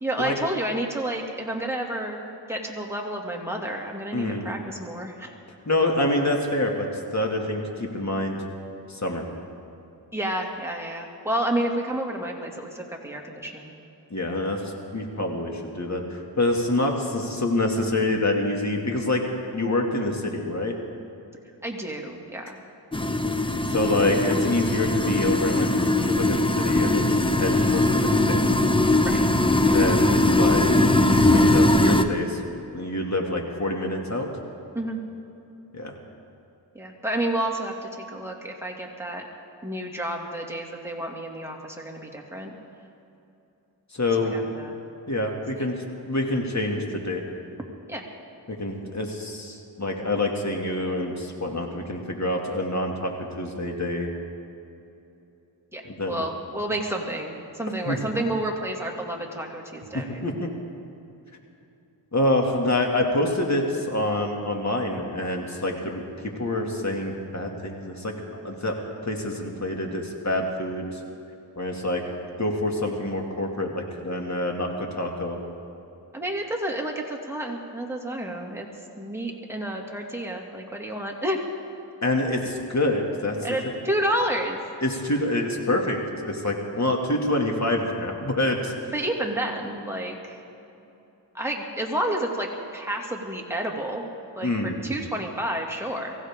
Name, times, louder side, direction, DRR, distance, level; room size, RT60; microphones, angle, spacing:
voice 1, 0.0-2.2 2.5-5.3 10.1-13.7 21.6-22.6 29.0-29.3 29.7-29.8 34.7-35.0 36.7-39.3 39.6-42.5 44.3-44.8 45.6-45.7 47.9-48.0 55.7-55.8 56.1-60.2 76.1-78.7 79.0-81.4 83.4-84.6 88.9-90.4 91.3-94.1 94.4-96.2, right 1 dB, 5° right, 0 dB, 2.4 m, -30 dB
voice 2, 4.1-4.5 5.7-6.9 7.1-8.4 8.9-9.2 14.1-14.6 14.9-19.2 19.5-20.8 23.7-28.5 29.7-30.7 31.2-32.4 32.7-34.3 35.7-35.9 43.9-44.4 45.1-47.2 48.5-54.1 55.8-56.2 57.9-58.0 59.9-60.5 62.1-68.1 68.4-68.8 69.0-71.0 71.6-72.0 72.4-75.4 82.0-83.4 83.6-83.7 84.8-88.9 94.4-94.8, left 1 dB, 40° left, 1 dB, 2.4 m, -26 dB
sound 1, 22.9-32.0, left 2 dB, 10° left, 0.9 m, -20 dB
23.5 x 15.5 x 3.8 m, 2.8 s
cardioid pair, 55°, 44 cm